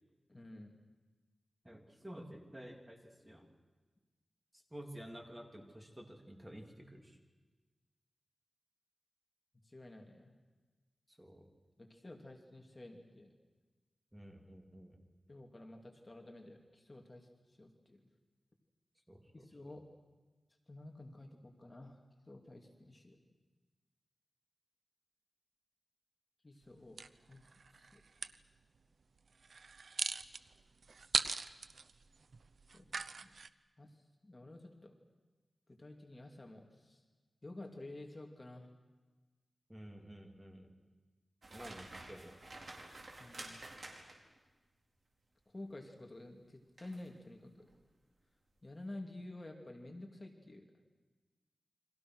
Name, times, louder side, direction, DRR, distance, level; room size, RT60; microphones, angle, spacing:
voice 1, 0.3-0.7 9.6-10.3 11.8-13.3 15.3-17.3 17.6-18.0 19.3-19.9 20.7-22.0 22.3-23.2 26.4-27.0 27.3-27.4 27.7-28.0 32.7-33.3 33.8-33.9 34.2-34.9 35.7-37.0 37.4-38.7 43.2-43.6 45.5-47.7 48.6-50.6, left 1 dB, 25° left, 2 dB, 2.7 m, -51 dB
voice 2, 1.6-3.0 3.2-3.5 4.7-7.2 11.2-11.4 14.1-15.0 19.1-19.5 39.7-40.7 41.5-42.4, equal, 10° right, 2 dB, 3.3 m, -51 dB
sound 1, 27.0-28.4 29.4-33.5, right 4 dB, 70° right, 0.8 m, -39 dB
sound 2, 41.4-44.4 46.8-47.1 47.6-47.8, right 2 dB, 55° right, 4.6 m, -50 dB
29.5 x 25.0 x 6.3 m, 1.3 s
wide cardioid pair, 110°, 0 cm